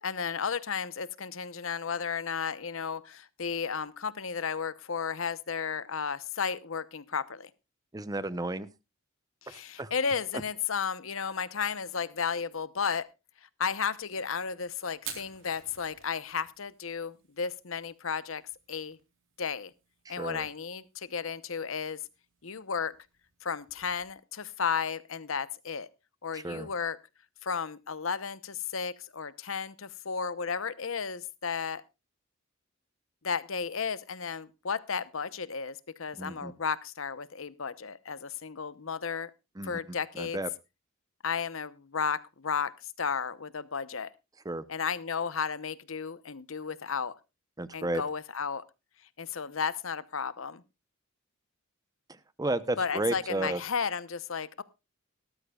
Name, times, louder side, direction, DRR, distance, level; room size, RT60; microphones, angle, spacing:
voice 1, 0.0-7.5 9.4-13.1 13.4-18.4 18.7-19.0 19.4-19.7 20.1-22.0 22.4-22.9 23.4-25.9 26.2-27.0 27.4-31.8 33.2-39.3 39.6-40.4 41.2-44.1 44.7-47.1 47.7-48.6 49.2-50.6 52.8-54.6, left 6 dB, 70° left, 0.9 m, -33 dB
voice 2, 7.9-8.7 9.8-9.9 20.1-20.5 26.3-26.7 36.2-36.5 39.6-39.8 40.2-40.5 44.4-44.6 47.6-48.0 52.1-53.6, right 2 dB, 15° right, 0.8 m, -33 dB
Fire, 14.9-24.1, right 8 dB, 65° right, 3.8 m, -52 dB
18.0 x 13.0 x 2.4 m
head